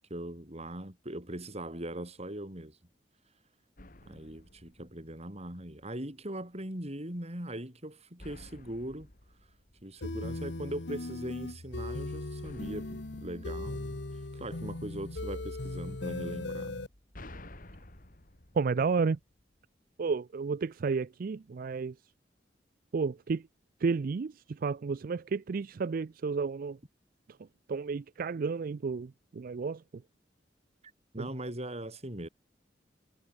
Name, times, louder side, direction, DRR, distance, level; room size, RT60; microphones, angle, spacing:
voice 1, 0.1-2.8 4.1-9.1 9.8-14.0 14.3-16.8 31.1-32.3, right 1 dB, 35° right, 6.1 m, -40 dB
sound 1, 3.8-5.6 8.2-10.6 12.4-14.7 16.7-19.7, left 1 dB, 50° left, 2.9 m, -53 dB
sound 2, 10.0-16.9, left 2 dB, 75° left, 1.4 m, -38 dB
voice 2, 18.5-19.2 20.0-21.9 22.9-23.4 23.8-26.8 27.7-29.8 31.2-31.3, right 5 dB, 50° right, 0.4 m, -31 dB
head